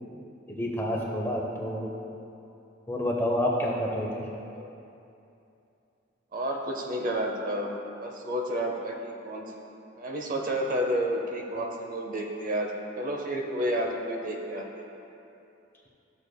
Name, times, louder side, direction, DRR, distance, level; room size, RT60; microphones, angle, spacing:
voice 1, 0.5-1.9 2.9-4.3, left 1 dB, 10° left, -2 dB, 0.8 m, -28 dB
voice 2, 6.3-7.7 8.0-9.5 10.0-14.8, equal, 45° right, 1 dB, 0.7 m, -31 dB
13.0 x 6.6 x 2.3 m, 2.8 s
head